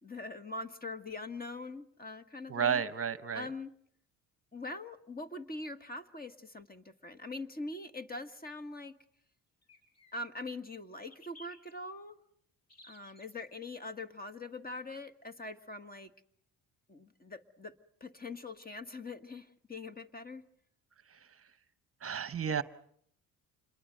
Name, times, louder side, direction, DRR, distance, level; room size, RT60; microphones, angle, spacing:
voice 1, 0.0-2.8 3.3-3.7 4.5-8.9 10.1-12.2 12.8-16.1 16.9-20.4, left 2 dB, 25° left, 10 dB, 1.7 m, -43 dB
voice 2, 2.5-3.5 21.1-21.3 22.0-22.6, right 7 dB, 35° right, 14 dB, 1.0 m, -32 dB
sound 1, 9.6-10.5 11.1-11.7 12.7-13.4, left 2 dB, 40° left, 5.8 m, -57 dB
27.5 x 22.0 x 6.7 m, 0.67 s
cardioid pair, 80°, 38 cm